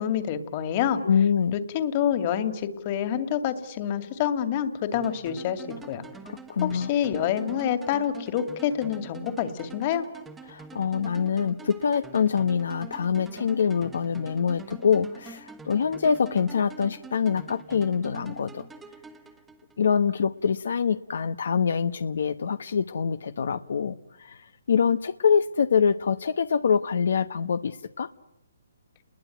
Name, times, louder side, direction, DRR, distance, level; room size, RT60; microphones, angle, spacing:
voice 1, 0.0-1.0 1.5-6.1 6.6-10.1, left 9 dB, 35° left, 10 dB, 2.4 m, -27 dB
voice 2, 1.0-1.5 6.2-6.9 10.5-18.7 19.8-28.1, left 6 dB, 70° left, 12 dB, 1.0 m, -25 dB
sound 1, 4.9-20.0, right 4 dB, 10° right, 1.4 m, -45 dB
30.0 x 21.5 x 9.3 m, 0.87 s
hypercardioid pair, 155°, 0 cm